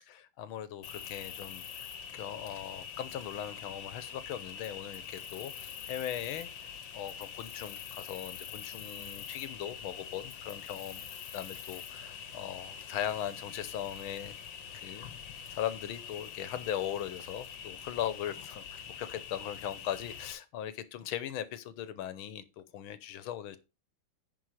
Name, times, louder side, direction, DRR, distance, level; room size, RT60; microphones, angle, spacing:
voice 1, 0.0-6.5 6.9-11.0 11.3-14.4 14.7-15.1 15.5-23.6, left 10 dB, 85° left, 1.7 m, -39 dB
Cricket, 0.8-20.3, left 7 dB, 70° left, 1.6 m, -44 dB
10.5 x 4.6 x 4.9 m
omnidirectional pair, 2.2 m